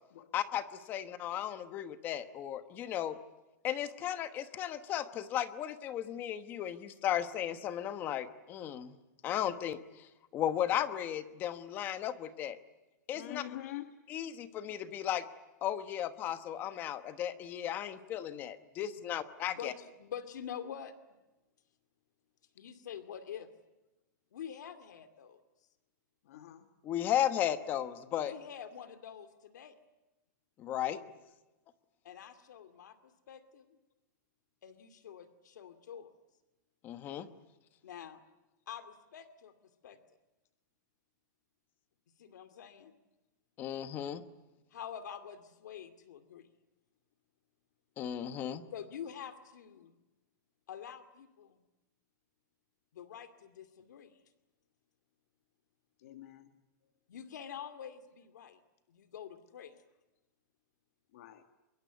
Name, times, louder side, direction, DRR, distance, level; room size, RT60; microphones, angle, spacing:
voice 1, 0.3-3.2 3.6-9.0 9.2-12.6 13.1-13.4 14.1-15.2 15.6-19.7 26.8-28.3 30.6-31.0 36.8-37.3 43.6-44.2 48.0-48.6, left 11 dB, 20° left, 12 dB, 1.1 m, -35 dB
voice 2, 13.1-13.9 26.2-26.7 56.0-56.5 61.1-61.4, left 14 dB, 50° left, 8 dB, 1.8 m, -45 dB
voice 3, 19.5-21.0 22.5-23.5 24.3-25.4 28.2-29.7 32.0-33.8 34.6-36.1 37.8-38.2 38.7-39.5 39.8-40.0 42.2-42.9 44.7-46.5 48.7-49.9 50.7-51.6 52.9-54.2 57.1-58.6 58.9-59.8, left 8 dB, 70° left, 10 dB, 2.4 m, -46 dB
25.0 x 23.0 x 9.4 m, 1.0 s
supercardioid pair, 175°, 10 cm